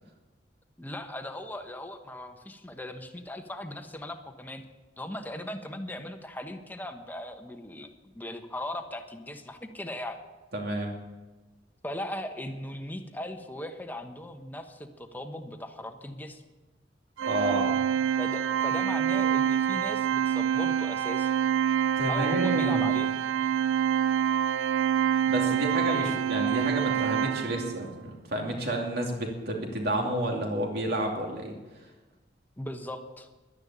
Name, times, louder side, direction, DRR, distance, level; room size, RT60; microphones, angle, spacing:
voice 1, 0.8-4.6 5.0-10.2 11.8-16.4 18.2-21.3 22.1-23.1 25.5-26.3 32.6-33.3, left 1 dB, 10° left, 6 dB, 1.0 m, -38 dB
voice 2, 10.5-10.9 17.3-17.7 22.0-22.9 25.3-31.6, right 1 dB, 60° right, 1 dB, 2.7 m, -30 dB
Organ, 17.2-27.9, right 9 dB, 85° right, 0.3 m, -26 dB
11.5 x 10.5 x 8.6 m, 1.2 s
head